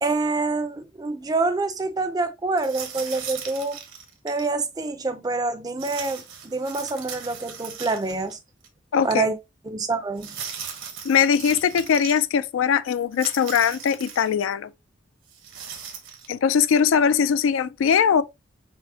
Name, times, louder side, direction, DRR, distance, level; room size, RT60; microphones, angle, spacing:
voice 1, 0.0-3.8 4.2-8.4 9.0-9.4 9.7-10.4, right 3 dB, 20° right, 0.4 m, -26 dB
sound 1, 2.6-4.5 5.8-8.3 8.6-8.7 10.2-12.2 13.1-14.3 15.3-16.3, right 7 dB, 80° right, 1.0 m, -38 dB
voice 2, 8.9-9.3 11.0-14.7 16.3-18.2, left 7 dB, 85° left, 0.3 m, -21 dB
5.9 x 2.1 x 2.7 m
head